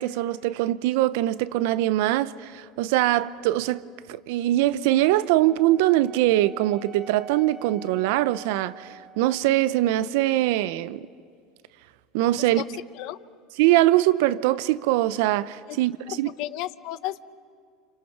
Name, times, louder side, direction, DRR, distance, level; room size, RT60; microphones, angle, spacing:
voice 1, 0.0-3.8 4.1-11.1 12.1-12.6 13.6-16.3, right 15 dB, 75° right, 0.7 m, -22 dB
Wind instrument woodwind instrument, 5.4-9.5, right 2 dB, 10° right, 1.7 m, -46 dB
voice 2, 16.1-17.2, left 15 dB, 65° left, 0.8 m, -33 dB
30.0 x 26.5 x 5.9 m
supercardioid pair, 115°, 0 cm